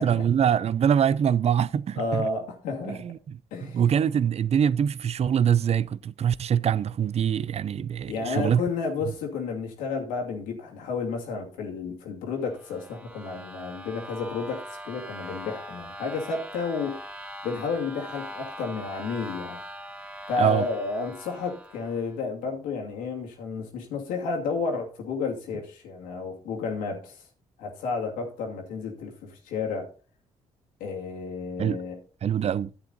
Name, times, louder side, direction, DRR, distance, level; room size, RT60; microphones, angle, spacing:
voice 1, 0.0-2.3 2.9-3.2 3.7-8.6 20.4-20.6 31.6-31.8 32.2-32.7, right 8 dB, 50° right, 0.6 m, -24 dB
voice 2, 2.0-3.0 3.5-3.8 8.1-17.0 17.4-19.6 20.3-27.3 27.6-29.9 30.8-32.0, left 4 dB, 90° left, 2.5 m, -31 dB
sound 1, 12.4-22.1, right 1 dB, 5° right, 1.6 m, -41 dB
10.5 x 8.2 x 4.0 m
supercardioid pair, 55°, 13 cm